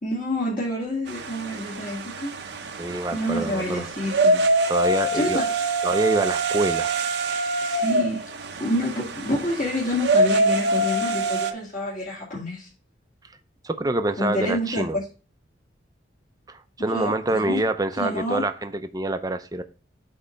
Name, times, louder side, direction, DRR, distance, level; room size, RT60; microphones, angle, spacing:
voice 1, 0.0-2.3 3.1-4.4 5.1-5.5 7.6-8.2 8.6-12.7 14.2-14.8 16.9-17.6 18.0-18.4, left 1 dB, 45° left, 2.3 m, -28 dB
sound 1, 1.1-11.5, right 2 dB, 65° right, 0.7 m, -25 dB
voice 2, 2.8-3.9 4.7-5.4 5.8-7.0 13.6-15.0 16.5-19.6, right 2 dB, 20° right, 0.6 m, -26 dB
8.2 x 3.3 x 5.2 m
head